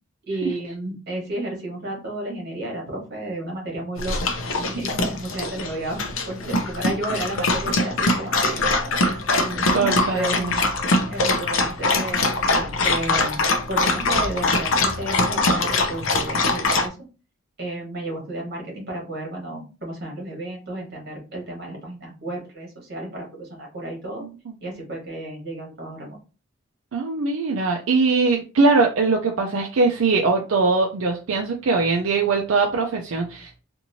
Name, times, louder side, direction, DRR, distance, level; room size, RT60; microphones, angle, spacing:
voice 1, 0.3-4.3 4.6-8.6 9.4-10.5 11.1-17.0 17.6-24.2 24.6-26.2, right 1 dB, 50° right, -1 dB, 1.3 m, -32 dB
Dog, 4.0-16.9, left 2 dB, 75° left, 0.5 m, -23 dB
voice 2, 9.7-10.6 24.2-24.5 26.9-33.6, right 4 dB, 75° right, 1 dB, 0.4 m, -21 dB
3.0 x 2.5 x 2.7 m, 0.34 s
head